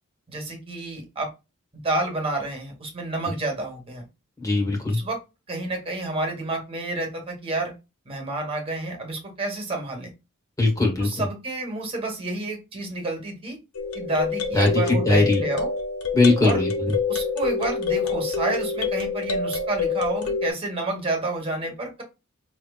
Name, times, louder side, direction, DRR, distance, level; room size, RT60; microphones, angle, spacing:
voice 1, 0.3-1.3 1.7-4.0 4.9-5.2 5.5-7.7 8.0-10.1 11.0-13.6 13.9-15.7 16.4-16.6 17.1-22.0, right 2 dB, 25° right, 3 dB, 1.6 m, -29 dB
voice 2, 4.4-5.0 10.6-11.2 14.5-15.4 16.1-16.9, left 2 dB, 15° left, 0 dB, 1.6 m, -20 dB
sound 1, 13.7-20.5, left 5 dB, 75° left, 0.8 m, -27 dB
5.6 x 3.1 x 2.4 m, 0.26 s
head